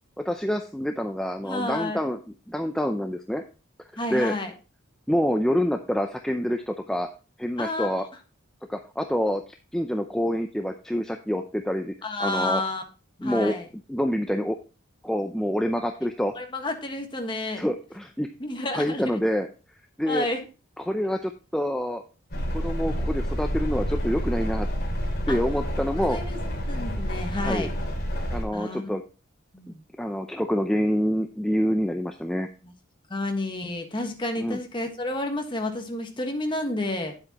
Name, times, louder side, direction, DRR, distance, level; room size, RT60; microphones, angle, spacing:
voice 1, 0.2-2.2 2.5-3.4 4.1-4.4 5.1-7.1 7.4-8.1 8.7-9.4 9.7-11.9 12.2-12.6 13.2-13.6 13.9-14.6 15.0-16.4 17.6-18.3 18.7-19.5 20.0-20.3 20.8-22.0 22.5-24.7 25.3-26.2 27.4-27.7 28.3-29.0 30.0-32.5 34.4-34.6, equal, 5° left, 5 dB, 0.4 m, -26 dB
voice 2, 1.4-2.0 4.0-4.5 7.6-8.0 12.0-12.8 13.2-13.7 16.3-17.6 18.4-19.1 20.1-20.4 25.3-25.4 26.1-26.4 26.7-27.7 28.5-29.0 29.5-29.8 32.6-32.7 33.1-37.1, left 2 dB, 25° left, 4 dB, 1.4 m, -30 dB
sound 1, 22.3-28.4, equal, 50° left, 2.7 m, -29 dB
9.9 x 8.0 x 2.9 m, 0.33 s
head